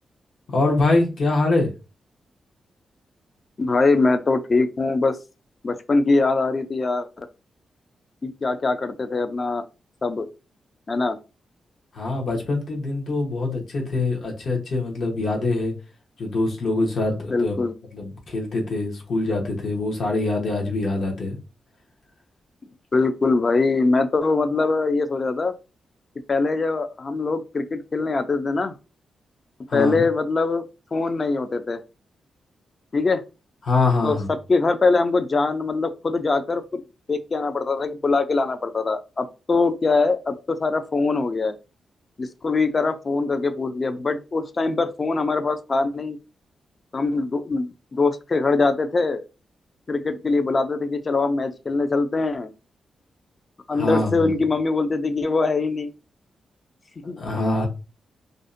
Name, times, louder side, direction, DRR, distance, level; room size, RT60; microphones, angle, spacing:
voice 1, 0.5-1.7 11.9-15.7 16.2-17.6 17.9-21.4 29.7-30.0 33.6-34.3 53.7-54.3 57.0-57.7, left 2 dB, 65° left, 0.8 m, -24 dB
voice 2, 3.6-5.2 5.6-7.3 8.2-9.6 10.0-10.3 10.9-11.2 17.3-17.7 22.6-25.5 26.3-28.7 29.7-30.6 30.9-31.8 32.9-33.2 34.0-34.2 34.5-36.8 37.1-41.5 42.2-46.2 46.9-49.2 49.9-52.5 53.7-55.9 57.0-57.2, left 3 dB, 40° left, 0.3 m, -22 dB
2.5 x 2.1 x 2.4 m
cardioid pair, 85°, 0 cm